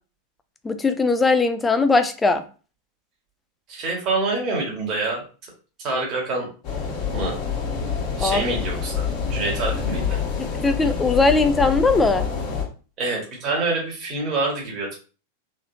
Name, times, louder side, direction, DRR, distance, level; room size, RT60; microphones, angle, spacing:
voice 1, 0.6-2.4 8.2-8.5 10.4-12.3, left 3 dB, 10° left, 9 dB, 0.5 m, -20 dB
voice 2, 3.7-5.2 5.8-6.5 7.1-7.4 8.2-10.2 13.0-14.9, right 3 dB, 35° right, -1 dB, 1.7 m, -26 dB
sound 1, 6.6-12.6, left 6 dB, 40° left, 1.5 m, -27 dB
3.7 x 3.4 x 2.7 m, 0.36 s
figure-of-eight pair, 90°, 0 cm